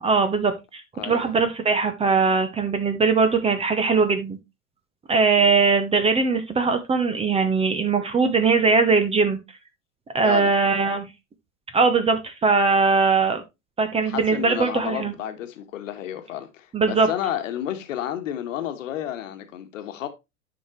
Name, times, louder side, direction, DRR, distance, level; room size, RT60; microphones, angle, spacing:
voice 1, 0.0-4.4 5.1-9.4 10.1-11.1 11.7-13.4 13.8-15.1 16.7-17.1, right 4 dB, 15° right, 0.8 m, -20 dB
voice 2, 10.2-10.5 14.0-20.1, left 11 dB, 60° left, 1.4 m, -31 dB
9.7 x 5.1 x 3.1 m
figure-of-eight pair, 90°, 44 cm